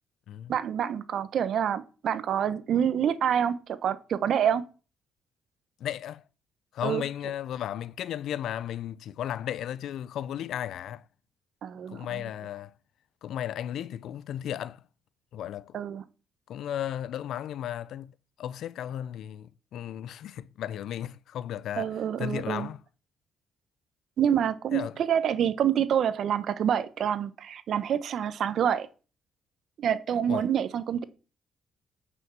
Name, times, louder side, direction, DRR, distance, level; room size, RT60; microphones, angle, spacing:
voice 1, 0.5-4.6 6.8-7.0 11.6-12.2 15.7-16.0 21.8-22.7 24.2-28.9 29.8-31.0, right 9 dB, 65° right, 1.1 m, -27 dB
voice 2, 5.8-6.2 6.7-11.0 11.9-12.7 13.2-14.8 15.3-15.8 16.5-22.8 24.7-25.0 30.3-30.4, left 10 dB, 75° left, 0.5 m, -35 dB
9.1 x 6.3 x 7.2 m
cardioid pair, 90°, 0 cm